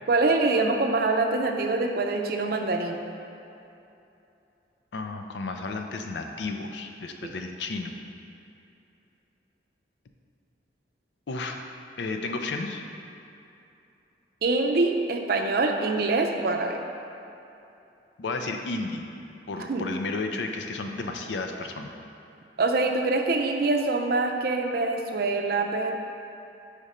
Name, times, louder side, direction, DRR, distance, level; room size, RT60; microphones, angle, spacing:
voice 1, 0.1-3.0 7.2-7.3 14.4-16.8 19.6-19.8 22.6-25.9, right 3 dB, 55° right, 3 dB, 0.5 m, -25 dB
voice 2, 4.9-7.9 11.3-11.6 12.0-12.8 18.2-19.1 19.5-21.9, left 3 dB, 75° left, 4 dB, 0.5 m, -32 dB
5.1 x 5.0 x 4.2 m, 2.8 s
head